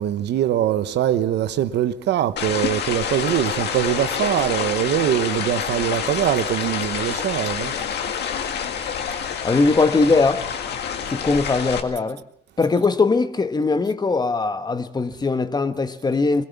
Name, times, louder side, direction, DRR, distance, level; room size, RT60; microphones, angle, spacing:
voice 1, 0.0-7.8, right 11 dB, 75° right, 1.0 m, -22 dB
sound 1, 2.4-11.8, left 7 dB, 70° left, 2.0 m, -27 dB
voice 2, 9.4-10.5 11.1-12.2 12.6-16.4, left 3 dB, 25° left, 1.2 m, -20 dB
22.0 x 17.5 x 7.1 m
cardioid pair, 105°, 18 cm